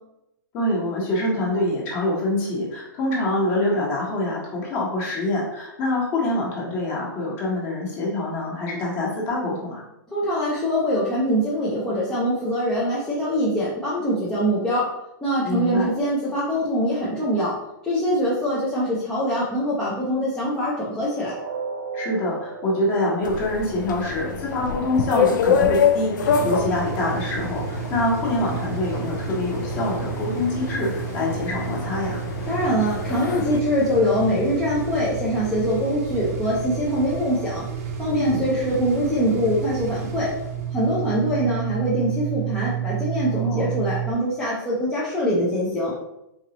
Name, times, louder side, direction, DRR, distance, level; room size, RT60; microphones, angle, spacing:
voice 1, 0.5-9.8 15.4-15.9 21.9-32.2 38.2-38.4 43.3-43.6, left 1 dB, 20° left, -3 dB, 1.2 m, -25 dB
voice 2, 10.1-14.9 15.2-17.5 17.8-21.3 32.5-37.6 38.0-40.3 40.7-45.9, equal, 5° left, -9 dB, 0.5 m, -23 dB
sound 1, 21.3-27.3 27.7-27.9 28.3-28.4, right 5 dB, 80° right, 0.6 m, -38 dB
sound 2, 23.2-33.6, left 6 dB, 65° left, 0.5 m, -26 dB
sound 3, 26.2-44.1, right 8 dB, 45° right, 0.7 m, -30 dB
4.5 x 3.9 x 2.9 m, 0.86 s
hypercardioid pair, 175°, 11 cm